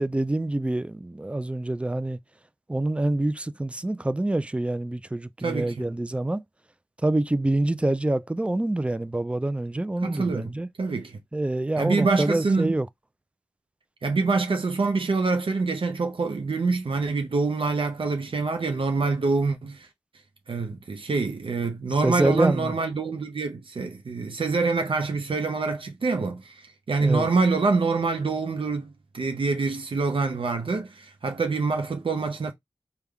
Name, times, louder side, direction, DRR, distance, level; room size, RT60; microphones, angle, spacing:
voice 1, 0.0-2.2 2.7-6.4 7.0-10.7 11.3-12.9 22.0-22.7 27.0-27.3, right 2 dB, 10° right, 0.3 m, -26 dB
voice 2, 5.4-5.9 10.0-10.5 10.8-11.2 11.8-12.7 14.0-19.9 20.5-32.5, right 4 dB, 65° right, 0.5 m, -26 dB
3.5 x 2.2 x 3.4 m
wide cardioid pair, 50°, 10 cm